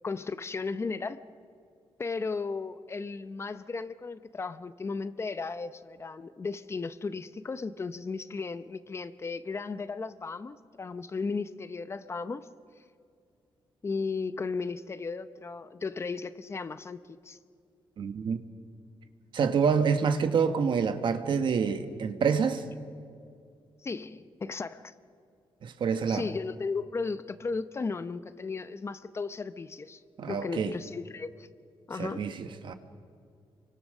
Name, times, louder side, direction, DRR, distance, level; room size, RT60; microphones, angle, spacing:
voice 1, 0.0-1.2 2.0-12.4 13.8-17.0 17.2-17.4 23.8-24.9 26.1-30.0 30.3-31.5 31.9-32.3, left 4 dB, 30° left, 0.7 m, -35 dB
voice 2, 18.0-18.4 19.3-22.6 25.6-26.3 30.2-30.7 32.0-32.7, right 6 dB, 60° right, 1.4 m, -27 dB
28.5 x 24.0 x 6.6 m
wide cardioid pair, 145°, 9 cm